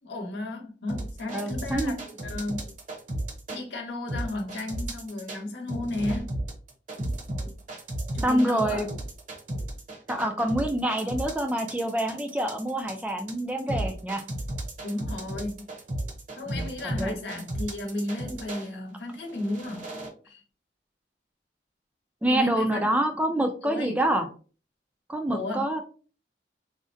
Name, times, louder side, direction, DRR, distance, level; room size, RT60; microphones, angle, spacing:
voice 1, 0.0-2.7 3.5-6.4 8.1-8.9 14.8-15.8 16.3-19.9 20.2-20.4 22.2-22.8 23.6-24.0 25.3-25.7, left 2 dB, 75° left, 0.9 m, -34 dB
sound 1, 0.9-3.6 4.1-5.4 5.7-18.7 19.2-20.1, right 1 dB, 45° right, 0.7 m, -34 dB
voice 2, 1.3-1.9 8.2-8.9 10.1-14.2 16.5-16.7 17.0-17.2 22.2-24.3 25.1-25.8, right 1 dB, 10° right, 0.3 m, -26 dB
3.7 x 2.1 x 2.6 m
head